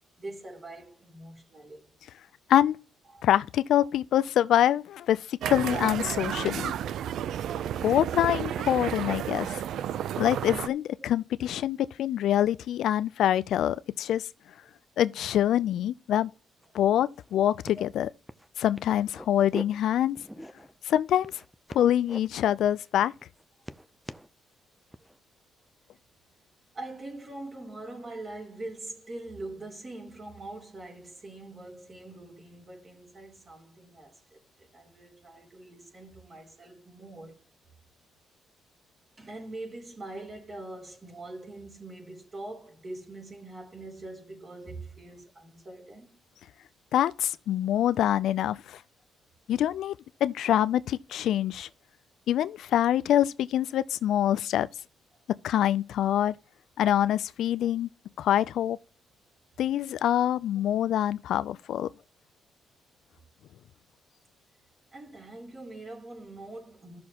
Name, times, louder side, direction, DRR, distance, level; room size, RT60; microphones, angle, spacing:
voice 1, 0.2-1.9 3.1-3.3 26.7-37.4 39.2-46.1 64.9-67.0, right 2 dB, 35° right, 3.3 m, -43 dB
voice 2, 3.2-6.7 7.8-9.5 10.2-14.3 15.0-16.3 16.7-18.1 18.6-20.2 20.9-21.3 21.7-23.1 46.9-48.8 49.5-50.0 50.2-51.7 52.3-54.7 55.3-56.4 56.8-57.9 58.2-58.8 59.6-61.9, left 11 dB, 75° left, 0.3 m, -25 dB
sound 1, 5.4-10.7, right 10 dB, 75° right, 0.4 m, -32 dB
sound 2, 16.6-16.7 17.0-17.3 17.6-17.8 18.3-18.5 18.8-19.6 20.2-20.8 21.2-22.2 22.6-22.9 23.2-24.3 24.9-25.2, equal, 5° right, 0.5 m, -43 dB
14.0 x 6.2 x 2.9 m
cardioid pair, 90°, 0 cm